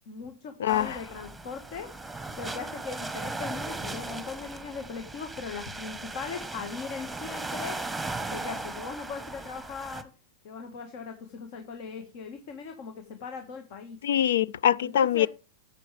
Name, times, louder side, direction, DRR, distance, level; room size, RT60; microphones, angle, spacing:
voice 1, 0.1-1.9 2.4-7.8 8.3-10.1 10.4-14.0 14.8-15.3, left 5 dB, 55° left, 1.6 m, -39 dB
voice 2, 0.6-1.0 14.0-15.3, left 10 dB, 80° left, 0.4 m, -23 dB
sound 1, 0.7-10.0, right 2 dB, 5° right, 1.2 m, -37 dB
11.5 x 8.0 x 3.4 m
hypercardioid pair, 120°, 0 cm